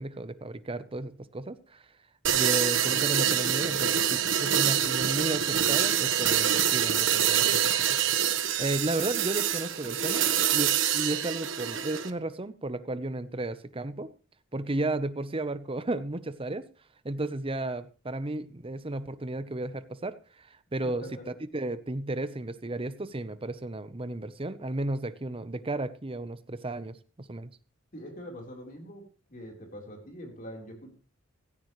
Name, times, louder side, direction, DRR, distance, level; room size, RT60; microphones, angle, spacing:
voice 1, 0.0-1.8 2.3-7.6 8.6-10.3 10.5-14.1 14.5-16.7 17.0-27.5, right 2 dB, 30° right, 14 dB, 0.8 m, -33 dB
sound 1, 2.2-12.1, right 9 dB, 75° right, 1.3 m, -26 dB
voice 2, 20.8-21.3 27.9-29.0 29.3-30.9, equal, 45° left, 2 dB, 4.0 m, -43 dB
16.5 x 14.5 x 3.2 m, 0.36 s
head